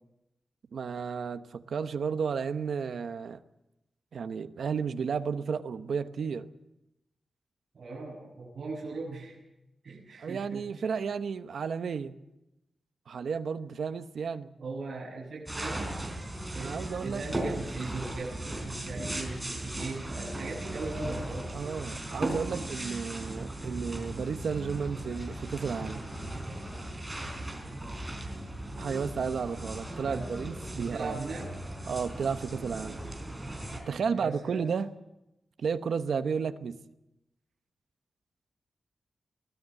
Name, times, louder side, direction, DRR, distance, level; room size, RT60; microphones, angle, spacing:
voice 1, 0.7-3.4 4.1-6.5 10.2-12.1 13.1-14.5 16.6-17.2 21.5-26.1 28.8-31.2 31.9-33.0 33.8-34.9 35.6-36.8, right 6 dB, 80° right, 10 dB, 1.0 m, -33 dB
voice 2, 7.7-9.4 9.8-10.6 14.6-15.9 16.5-21.5 30.0-30.3 30.7-31.5 34.1-34.6, right 3 dB, 55° right, -5 dB, 7.1 m, -39 dB
sound 1, 15.5-33.8, right 1 dB, 10° right, 4.3 m, -37 dB
sound 2, 24.0-30.6, left 3 dB, 75° left, 5.4 m, -51 dB
23.0 x 17.0 x 7.7 m, 0.91 s
wide cardioid pair, 160°, 0 cm